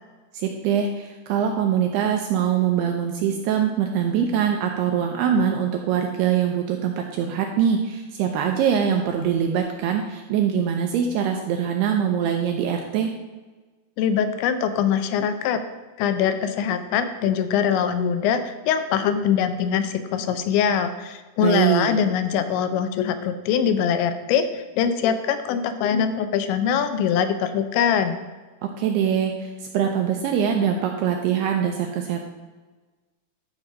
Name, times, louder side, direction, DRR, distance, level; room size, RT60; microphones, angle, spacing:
voice 1, 0.3-13.1 21.4-21.9 28.6-32.2, right 8 dB, 80° right, 3 dB, 2.4 m, -23 dB
voice 2, 14.0-15.6 16.0-28.2, left 8 dB, 80° left, 9 dB, 2.9 m, -23 dB
12.5 x 4.8 x 6.6 m, 1.3 s
omnidirectional pair, 5.4 m